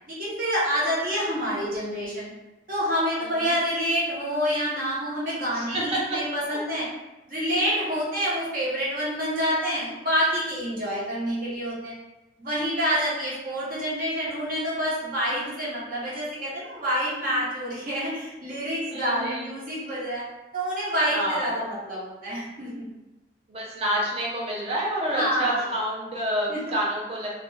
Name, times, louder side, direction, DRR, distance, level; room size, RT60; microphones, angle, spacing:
voice 1, 0.1-2.3 2.7-6.8 7.3-12.0 12.4-20.2 20.5-22.9 25.1-25.7 26.5-26.6, equal, 50° right, -7 dB, 0.9 m, -27 dB
voice 2, 3.2-3.6 5.5-6.2 7.6-7.8 15.3-15.4 18.9-19.5 21.1-21.5 23.5-27.3, right 1 dB, 35° right, -4 dB, 0.6 m, -28 dB
2.5 x 2.2 x 3.1 m, 1.0 s
head